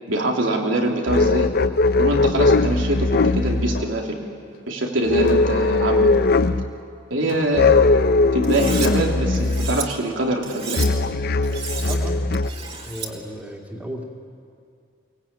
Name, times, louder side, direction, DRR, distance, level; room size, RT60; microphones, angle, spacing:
voice 1, 0.1-1.5 2.0-4.2 4.7-6.1 7.1-7.8 8.3-11.0, right 1 dB, 85° right, 0 dB, 3.0 m, -24 dB
sound 1, 1.1-3.8 5.1-6.7 7.5-9.9 10.8-12.5, left 3 dB, 50° left, 0.6 m, -19 dB
sound 2, 3.7-4.0 4.4-4.6 5.3-5.5 6.4-6.5 7.3-7.6 8.4-8.5 8.8-9.3, left 2 dB, 70° left, 2.7 m, -36 dB
Cutlery silverware, 8.4-8.9 9.3-9.8 10.4-10.9 11.4-12.0 12.3-13.1, right 5 dB, 30° right, 2.8 m, -32 dB
voice 2, 11.8-12.3 12.9-14.0, equal, 10° right, 0 dB, 2.5 m, -34 dB
23.5 x 19.0 x 8.9 m, 2.3 s
head